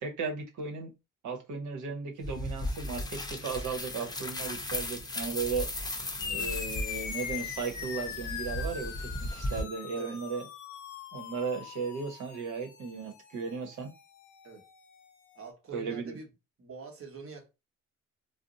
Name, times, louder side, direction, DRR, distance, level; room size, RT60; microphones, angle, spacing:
voice 1, 0.0-0.9 1.2-5.7 6.3-10.4 11.1-13.9 15.7-16.2, right 5 dB, 75° right, 1.0 m, -36 dB
sound 1, 2.2-9.6, left 1 dB, 15° left, 0.6 m, -36 dB
sound 2, 6.2-15.1, left 8 dB, 75° left, 0.7 m, -41 dB
voice 2, 6.2-6.6 10.0-10.2 14.4-14.7 15.3-16.3 16.6-17.5, right 4 dB, 45° right, 1.2 m, -46 dB
2.5 x 2.0 x 3.8 m
cardioid pair, 90°, 30 cm